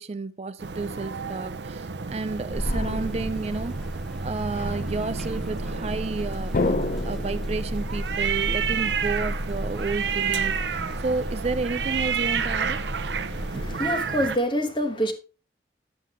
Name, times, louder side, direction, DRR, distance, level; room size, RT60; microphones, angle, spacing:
voice 1, 0.0-3.8 4.2-6.8 7.0-12.8, right 3 dB, 35° right, 0.4 m, -31 dB
sound 1, 0.6-14.4, right 6 dB, 85° right, 0.7 m, -31 dB
sound 2, 2.5-13.9, equal, ahead, 0.8 m, -33 dB
sound 3, 2.6-3.6 4.4-5.9 6.5-9.0, left 2 dB, 50° left, 0.6 m, -32 dB
voice 2, 13.3-15.1, equal, 30° left, 1.2 m, -26 dB
9.9 x 7.5 x 3.5 m
head